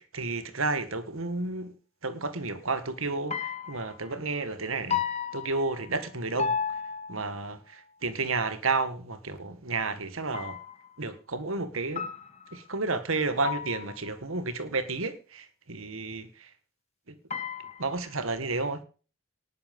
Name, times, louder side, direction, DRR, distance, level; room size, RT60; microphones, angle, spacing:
voice 1, 0.0-1.7 2.0-5.0 5.3-6.5 7.1-10.6 11.0-12.1 12.5-16.5 17.1-17.2 17.8-18.8, right 3 dB, 80° right, 1.8 m, -31 dB
sound 1, 3.3-4.1 4.9-6.1 6.4-7.4 10.3-11.0 12.0-12.7 13.4-14.1 17.3-18.1, left 6 dB, 30° left, 1.4 m, -34 dB
19.0 x 6.6 x 5.4 m
head